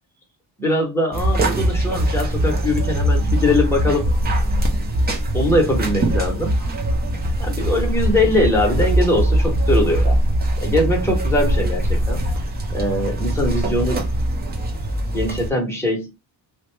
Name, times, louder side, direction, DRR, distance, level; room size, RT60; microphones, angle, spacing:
voice 1, 0.6-4.1 5.3-6.7 7.4-10.2 10.6-12.2 12.7-14.1 15.1-16.1, left 1 dB, 5° left, 0.7 m, -21 dB
sound 1, 1.1-15.5, right 1 dB, 25° right, 0.4 m, -21 dB
2.5 x 2.1 x 3.1 m
cardioid pair, 155°, 45 cm